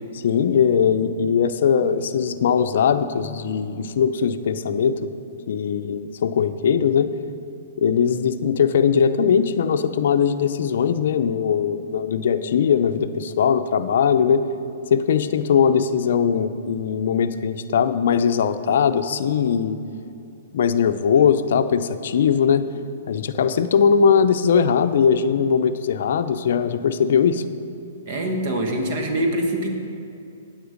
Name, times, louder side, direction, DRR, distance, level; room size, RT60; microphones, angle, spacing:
voice 1, 0.2-5.0 5.5-7.1 7.8-14.4 14.9-19.8 20.5-22.7 23.1-27.4, left 7 dB, 65° left, 9 dB, 0.5 m, -20 dB
voice 2, 28.1-29.7, right 1 dB, 50° right, 3 dB, 1.4 m, -24 dB
8.7 x 8.0 x 5.1 m, 2.6 s
hypercardioid pair, 135°, 0 cm